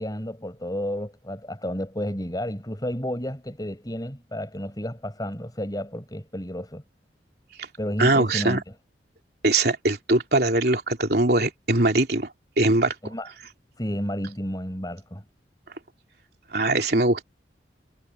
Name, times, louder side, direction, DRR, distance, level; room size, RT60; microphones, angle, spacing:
voice 1, 0.0-6.8 7.8-8.6 13.0-13.3 13.8-15.2, equal, 20° left, 6.1 m, -31 dB
voice 2, 8.0-8.6 9.4-12.3 12.6-12.9 16.5-17.2, right 2 dB, 60° right, 3.3 m, -21 dB
head